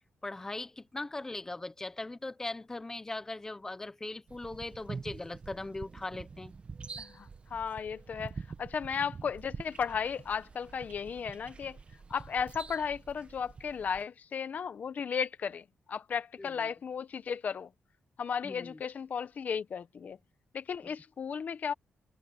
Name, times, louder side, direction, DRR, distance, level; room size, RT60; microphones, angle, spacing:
voice 1, 0.2-6.5 16.4-16.5 18.4-18.8, left 2 dB, 15° left, 0.8 m, -39 dB
sound 1, 4.3-14.0, right 5 dB, 30° right, 1.0 m, -46 dB
voice 2, 7.0-11.8 12.1-17.7 18.2-20.2 20.5-21.7, left 6 dB, 45° left, 0.9 m, -35 dB
wide cardioid pair, 175°, 4 cm